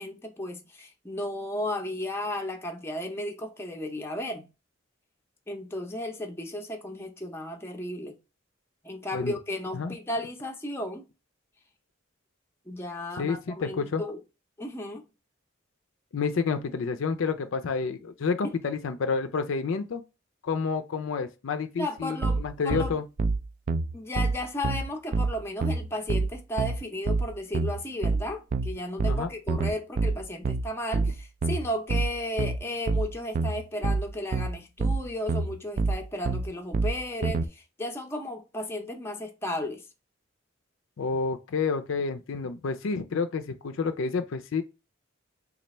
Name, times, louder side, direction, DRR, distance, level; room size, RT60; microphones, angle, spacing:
voice 1, 0.0-4.5 5.5-8.2 8.8-11.0 12.7-14.2 14.6-15.0 18.4-18.5 21.8-23.0 23.9-39.8, left 1 dB, 10° left, 0.5 m, -34 dB
voice 2, 13.2-14.0 16.1-20.0 20.4-23.0 29.1-29.3 41.0-44.6, left 5 dB, 75° left, 0.4 m, -29 dB
sound 1, 22.2-37.5, right 3 dB, 40° right, 0.3 m, -27 dB
3.3 x 2.3 x 4.1 m
head